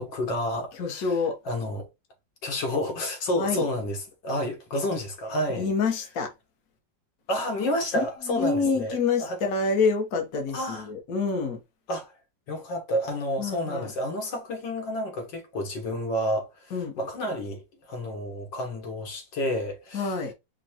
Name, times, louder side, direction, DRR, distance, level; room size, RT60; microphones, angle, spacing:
voice 1, 0.0-1.2 1.5-1.9 2.4-4.0 4.2-5.7 7.3-9.4 10.5-10.9 11.9-12.1 12.5-20.2, left 1 dB, 80° left, 2.0 m, -30 dB
voice 2, 0.8-1.4 3.4-3.7 5.6-6.3 7.9-11.6 13.4-13.9 16.7-17.0 19.9-20.3, left 4 dB, 55° left, 1.4 m, -27 dB
5.2 x 2.2 x 4.3 m
omnidirectional pair, 1.9 m